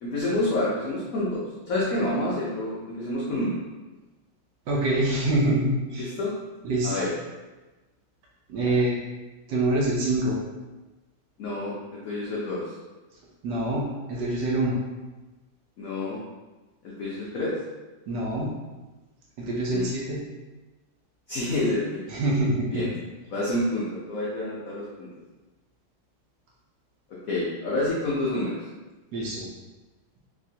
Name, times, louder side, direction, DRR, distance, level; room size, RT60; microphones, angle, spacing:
voice 1, 0.0-3.6 6.0-6.3 6.8-7.1 8.6-8.7 11.4-12.7 15.8-16.2 16.8-17.6 19.7-19.9 21.3-22.0 22.7-23.0 23.3-25.1 27.1-28.6, left 1 dB, 80° left, -6 dB, 0.7 m, -28 dB
voice 2, 4.7-6.1 6.6-7.0 8.5-9.0 9.5-10.4 13.4-14.8 18.1-18.5 19.4-20.2 22.1-22.9 29.1-29.5, right 1 dB, 70° right, -4 dB, 1.1 m, -25 dB
3.3 x 2.9 x 2.7 m, 1.2 s
omnidirectional pair, 2.2 m